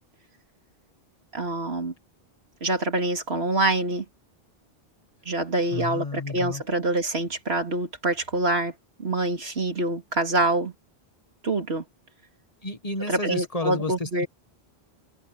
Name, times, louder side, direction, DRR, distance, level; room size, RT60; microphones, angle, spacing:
voice 1, 1.3-1.9 2.6-4.0 5.2-8.7 9.0-10.7 11.4-11.8 13.1-14.3, right 2 dB, 80° right, 2.9 m, -25 dB
voice 2, 5.7-6.6 12.6-14.3, left 2 dB, 35° left, 1.7 m, -31 dB
omnidirectional pair, 1.0 m